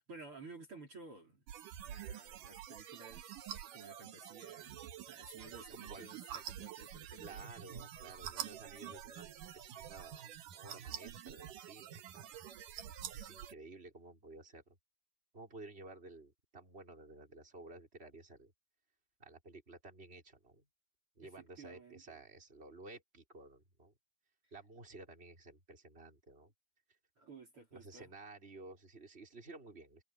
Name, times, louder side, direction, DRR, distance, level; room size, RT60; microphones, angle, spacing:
voice 1, 0.1-1.4 1.8-4.8 5.1-7.5 21.2-22.2 27.2-28.1, right 3 dB, 40° right, 5.2 m, -54 dB
sound 1, 1.5-13.5, right 10 dB, 75° right, 2.9 m, -47 dB
voice 2, 5.7-6.1 7.2-10.3 10.5-12.3 13.1-14.6 15.3-18.5 19.2-20.6 21.2-23.9 24.5-26.5 27.7-30.0, right 2 dB, 15° right, 5.3 m, -54 dB
omnidirectional pair, 3.8 m